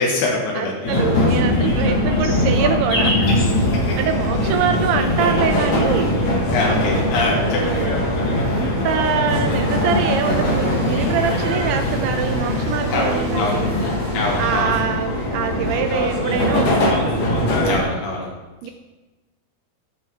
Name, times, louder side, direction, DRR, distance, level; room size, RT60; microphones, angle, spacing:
voice 1, 0.0-0.8 6.5-7.8 12.9-13.6 14.1-14.7 17.6-18.3, left 3 dB, 90° left, -3 dB, 4.0 m, -23 dB
voice 2, 0.5-3.2 3.8-6.2 7.6-8.0 8.4-13.7 14.4-17.0 18.6-18.7, right 7 dB, 85° right, 6 dB, 2.3 m, -24 dB
sound 1, 0.8-17.8, left 1 dB, 60° left, 2.0 m, -21 dB
sound 2, 1.8-4.9 5.8-7.2 8.0-9.9 11.3-13.5 13.9-14.4 14.6-15.7 16.1-16.7, left 1 dB, 40° left, 3.0 m, -33 dB
sound 3, 9.6-14.6, right 1 dB, 55° right, 3.8 m, -32 dB
16.0 x 6.1 x 3.5 m, 1.2 s
omnidirectional pair, 5.2 m